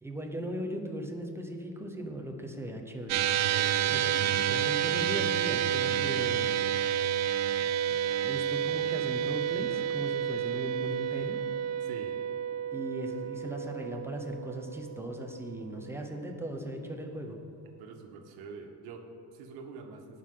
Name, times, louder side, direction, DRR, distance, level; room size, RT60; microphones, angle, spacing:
voice 1, 0.0-3.3 3.9-6.6 7.6-11.4 12.7-17.4, right 1 dB, 5° right, 2 dB, 0.7 m, -38 dB
sound 1, 3.1-15.6, right 10 dB, 45° right, 0.5 m, -30 dB
voice 2, 3.5-4.1 11.8-12.2 17.8-20.2, right 5 dB, 80° right, 4 dB, 1.4 m, -46 dB
18.0 x 6.5 x 3.8 m, 2.6 s
cardioid pair, 170°, 37 cm